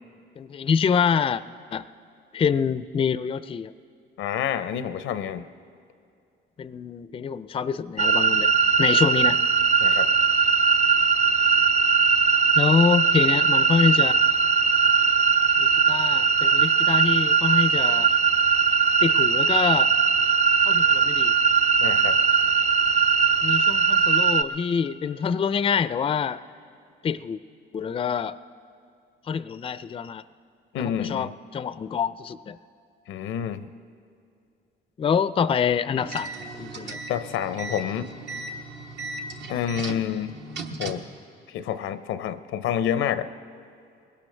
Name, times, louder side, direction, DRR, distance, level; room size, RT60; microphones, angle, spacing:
voice 1, 0.4-1.4 1.7-1.8 2.3-3.7 6.6-8.5 8.8-9.4 12.6-14.3 15.6-18.1 19.0-19.9 20.7-21.3 23.4-26.4 27.0-27.4 27.7-28.4 29.3-30.2 30.7-32.6 35.0-36.3 36.6-37.0, left 6 dB, 25° left, 15 dB, 0.4 m, -25 dB
voice 2, 4.2-5.4 9.8-10.1 17.5-17.6 21.8-22.2 30.7-31.3 33.1-33.7 37.1-38.1 39.5-40.4 40.8-41.0 41.5-43.3, left 9 dB, 85° left, 12 dB, 0.6 m, -28 dB
sound 1, 8.0-24.4, right 6 dB, 35° right, 0.5 m, -20 dB
sound 2, 36.0-41.1, right 2 dB, 65° right, 1.1 m, -37 dB
20.5 x 17.0 x 3.3 m, 2.4 s
cardioid pair, 90°, 20 cm